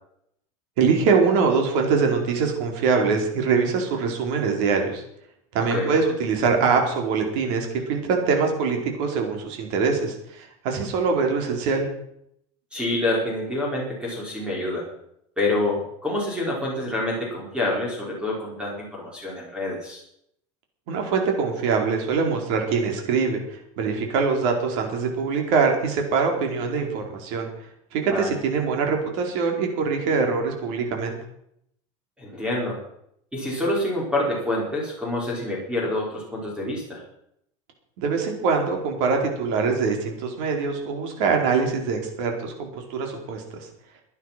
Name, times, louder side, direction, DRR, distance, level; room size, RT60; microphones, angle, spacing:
voice 1, 0.8-5.0 5.5-11.9 20.9-27.5 27.9-31.2 38.0-43.7, right 5 dB, 65° right, 2 dB, 4.6 m, -23 dB
voice 2, 12.7-14.9 15.4-20.0 28.1-28.3 32.2-32.8 33.3-37.0, left 1 dB, 5° right, -3 dB, 4.8 m, -27 dB
16.0 x 10.5 x 6.0 m, 0.73 s
supercardioid pair, 145°, 17 cm